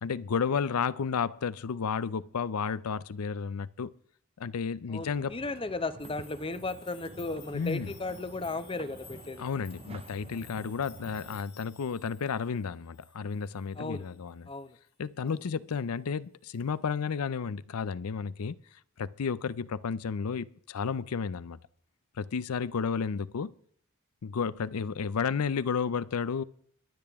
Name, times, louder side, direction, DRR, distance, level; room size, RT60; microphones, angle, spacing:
voice 1, 0.0-3.9 4.4-5.3 7.5-7.9 9.4-14.5 15.0-18.6 19.0-21.6 22.2-23.5 24.2-26.4, left 6 dB, 90° left, 0.5 m, -32 dB
voice 2, 4.9-9.5 13.8-14.0 14.5-14.7, left 3 dB, 25° left, 0.7 m, -35 dB
sound 1, 5.0-11.4, right 3 dB, 25° right, 0.4 m, -49 dB
sound 2, 6.0-14.9 15.3-15.9 16.5-16.6, left 9 dB, 50° left, 2.6 m, -56 dB
23.0 x 8.7 x 3.6 m
head